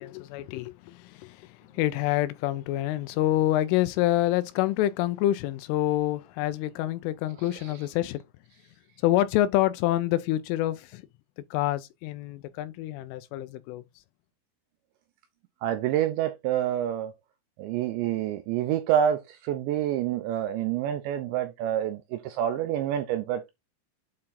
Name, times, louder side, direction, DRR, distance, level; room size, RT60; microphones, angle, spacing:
voice 1, 0.0-8.2 9.0-11.0 11.5-13.8, left 14 dB, 80° left, 3.0 m, -27 dB
voice 2, 15.6-17.1 17.6-23.5, right 10 dB, 80° right, 2.6 m, -27 dB
8.7 x 3.6 x 4.2 m
omnidirectional pair, 5.9 m